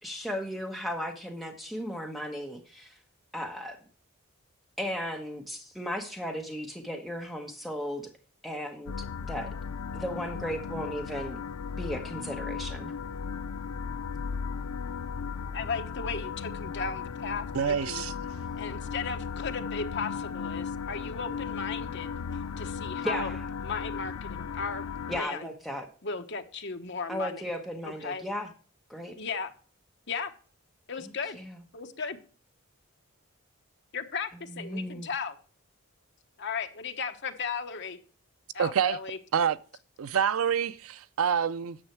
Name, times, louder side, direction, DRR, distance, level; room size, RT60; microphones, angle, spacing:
voice 1, 0.0-3.0 3.3-3.8 4.8-8.0 8.4-9.5 9.9-11.4 11.7-12.9 23.0-23.4 25.1-25.9 27.1-28.5 28.9-29.1 31.3-31.6 34.5-35.1, equal, ahead, 1.1 m, -35 dB
sound 1, 8.9-25.2, left 6 dB, 80° left, 0.5 m, -36 dB
voice 2, 15.5-18.0 18.6-24.8 25.1-25.5 26.0-27.4 27.8-28.2 29.2-29.5 30.1-30.3 30.9-31.4 31.7-32.2 33.9-35.4 36.4-38.0 38.5-39.2, left 5 dB, 50° left, 1.1 m, -36 dB
voice 3, 17.5-18.1 38.6-39.0 39.3-39.6 40.0-41.8, right 7 dB, 70° right, 0.5 m, -27 dB
9.7 x 7.2 x 4.6 m
head